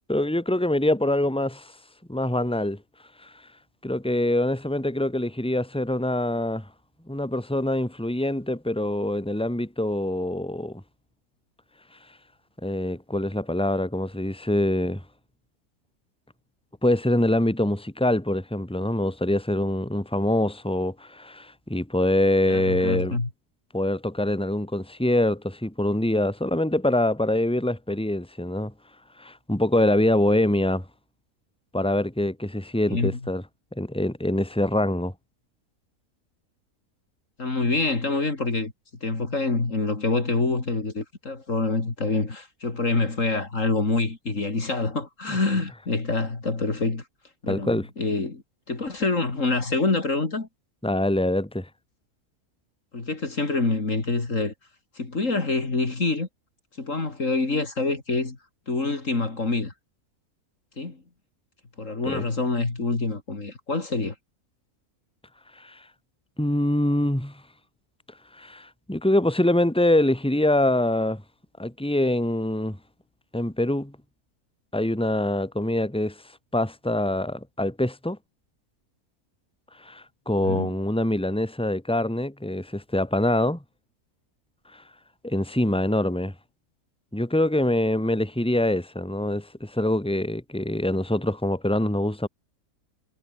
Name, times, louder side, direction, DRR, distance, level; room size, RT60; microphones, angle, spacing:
voice 1, 0.1-1.7 2.1-2.8 3.2-3.3 3.8-6.7 7.1-10.8 12.6-15.0 16.8-23.2 23.7-28.7 29.2-30.8 31.7-33.4 33.8-35.1 47.5-47.9 50.8-51.7 62.1-62.3 65.6-65.8 66.4-67.3 68.3-71.2 71.6-72.8 73.3-73.9 74.7-76.2 76.5-78.2 79.8-83.6 84.7-84.8 85.2-86.3 87.1-92.3, left 1 dB, 5° left, 3.2 m, -24 dB
voice 2, 22.5-23.3 32.9-33.2 37.4-38.7 39.0-47.0 47.4-48.4 48.7-50.5 52.9-54.5 55.0-56.3 56.8-58.4 58.7-59.7 60.8-61.0 61.8-64.1 80.4-80.7, left 3 dB, 55° left, 3.6 m, -26 dB
omnidirectional pair, 1.6 m